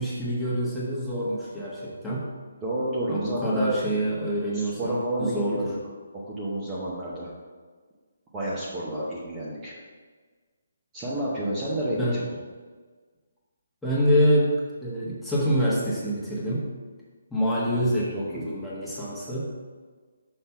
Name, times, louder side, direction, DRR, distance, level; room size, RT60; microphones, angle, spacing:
voice 1, 0.0-2.3 3.1-5.7 12.0-12.2 13.8-14.5 14.8-16.7 17.3-19.5, equal, 5° left, -9 dB, 1.3 m, -26 dB
voice 2, 2.6-3.8 4.5-5.7 6.1-7.3 8.3-9.7 10.9-12.2 17.8-18.5, right 1 dB, 15° right, -8 dB, 0.9 m, -30 dB
5.8 x 3.3 x 5.6 m, 1.5 s
hypercardioid pair, 160°, 0 cm